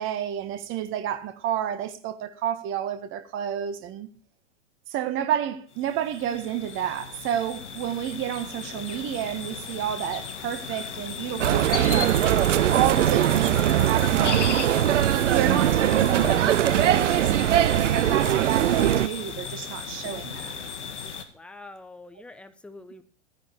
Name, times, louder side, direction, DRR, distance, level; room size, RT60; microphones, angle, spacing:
voice 1, 0.0-4.1 4.9-14.8 15.3-20.6, right 10 dB, 35° right, 1.6 m, -30 dB
sound 1, 5.7-21.2, left 6 dB, 70° left, 2.3 m, -36 dB
sound 2, 11.4-19.1, right 11 dB, 85° right, 0.5 m, -21 dB
voice 2, 21.3-23.0, left 2 dB, 5° left, 1.1 m, -45 dB
14.5 x 10.5 x 4.5 m
hypercardioid pair, 110°, 36 cm